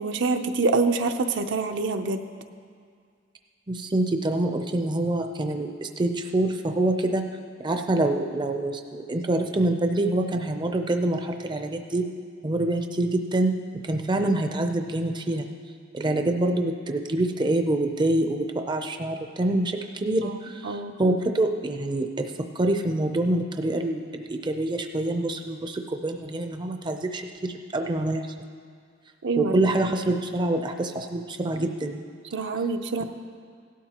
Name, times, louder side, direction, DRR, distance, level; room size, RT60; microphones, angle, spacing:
voice 1, 0.0-2.2 20.2-21.2 29.2-29.7 32.3-33.0, right 3 dB, 65° right, 6 dB, 0.6 m, -26 dB
voice 2, 3.7-7.3 7.6-12.1 12.4-13.5 13.8-15.5 15.9-22.3 22.6-28.2 29.4-32.0, right 1 dB, 25° right, 5 dB, 0.5 m, -26 dB
17.0 x 12.0 x 2.9 m, 2.1 s
head